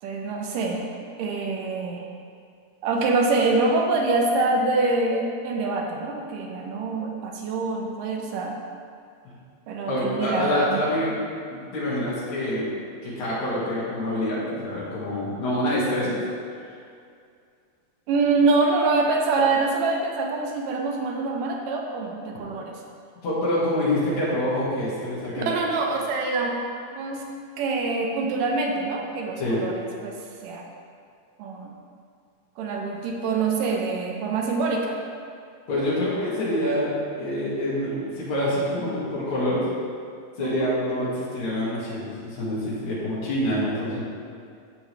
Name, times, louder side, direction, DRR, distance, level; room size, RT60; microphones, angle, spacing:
voice 1, 0.0-0.9 1.2-2.1 2.8-8.6 9.7-10.8 18.1-22.8 25.5-27.2 27.6-30.6 31.4-31.7 32.6-35.0 40.4-40.7, right 3 dB, 80° right, 1 dB, 2.5 m, -25 dB
voice 2, 9.9-11.2 11.5-12.7 13.0-16.2 23.2-25.6 29.4-29.6 35.7-39.6 40.4-44.0, left 1 dB, 60° left, -8 dB, 3.4 m, -26 dB
13.0 x 6.2 x 3.3 m, 2.3 s
omnidirectional pair, 3.8 m